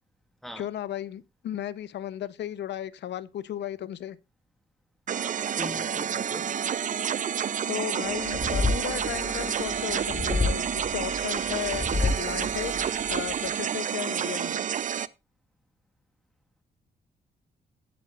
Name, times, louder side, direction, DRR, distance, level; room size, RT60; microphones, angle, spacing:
voice 1, 0.6-4.2 7.7-12.7 13.1-14.6, left 11 dB, 80° left, 0.8 m, -35 dB
sound 1, 5.1-15.1, right 8 dB, 45° right, 0.5 m, -29 dB
voice 2, 5.4-6.7, left 1 dB, ahead, 1.6 m, -41 dB
sound 2, 8.1-13.6, left 3 dB, 35° left, 2.4 m, -31 dB
17.0 x 7.7 x 2.5 m
wide cardioid pair, 135°, 18 cm